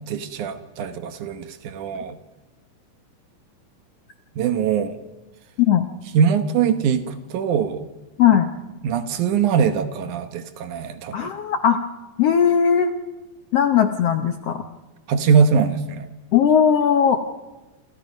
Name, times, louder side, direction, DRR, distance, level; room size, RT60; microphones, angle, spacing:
voice 1, 0.1-2.2 4.4-5.0 6.1-7.9 8.8-11.3 15.1-16.1, right 6 dB, 70° right, 10 dB, 2.4 m, -22 dB
voice 2, 11.1-11.8 12.2-12.9 13.5-14.6 16.3-17.2, left 8 dB, 65° left, 8 dB, 1.6 m, -18 dB
28.0 x 27.0 x 5.3 m, 1.1 s
omnidirectional pair, 3.9 m